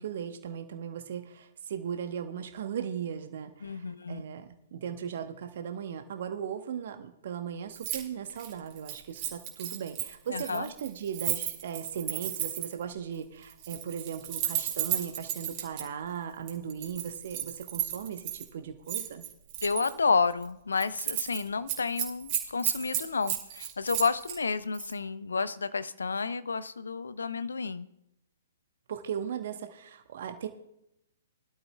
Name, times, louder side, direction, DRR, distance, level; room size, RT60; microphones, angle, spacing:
voice 1, 0.0-19.2 28.9-30.5, right 8 dB, 55° right, 7 dB, 1.0 m, -37 dB
voice 2, 3.6-4.2 10.3-10.7 19.6-27.9, left 4 dB, 75° left, 16 dB, 0.6 m, -30 dB
Keys jangling, 7.7-8.0 8.3-12.8 13.5-15.8 16.5-18.4 18.9-19.9 20.3-20.5 20.8-21.4 21.7-24.4 24.7-24.9, right 12 dB, 40° right, 2.3 m, -33 dB
21.0 x 11.5 x 2.2 m, 0.83 s
figure-of-eight pair, 120°, 0 cm